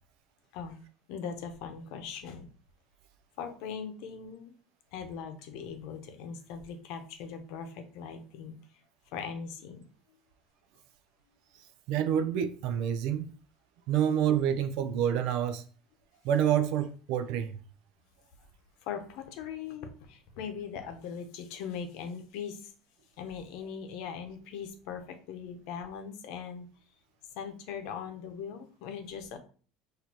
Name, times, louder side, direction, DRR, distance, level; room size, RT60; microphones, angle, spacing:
voice 1, 1.1-2.5 3.4-4.5 4.9-8.6 9.1-9.8 18.8-22.7 23.2-26.6 27.3-29.4, left 7 dB, 65° left, 0.8 m, -40 dB
voice 2, 11.9-13.3 13.9-15.6 16.2-17.6, right 9 dB, 60° right, 0.4 m, -28 dB
6.2 x 2.6 x 2.9 m
cardioid pair, 155°, 0 cm